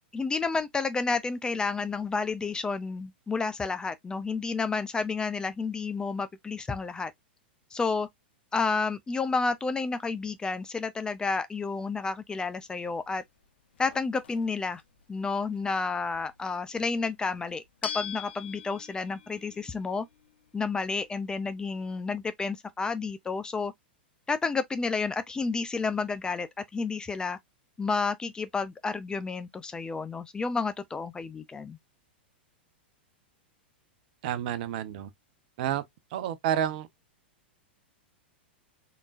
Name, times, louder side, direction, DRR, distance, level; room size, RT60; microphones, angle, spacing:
voice 1, 0.1-7.1 7.7-8.1 8.5-13.2 13.8-14.8 15.1-20.1 20.5-23.7 24.3-27.4 27.8-31.8, left 4 dB, 15° left, 0.5 m, -30 dB
sound 1, 12.2-21.7, left 8 dB, 75° left, 0.7 m, -45 dB
voice 2, 34.2-35.1 35.6-35.8 36.1-36.9, right 10 dB, 55° right, 0.8 m, -29 dB
3.8 x 3.7 x 2.4 m
hypercardioid pair, 105°, 6 cm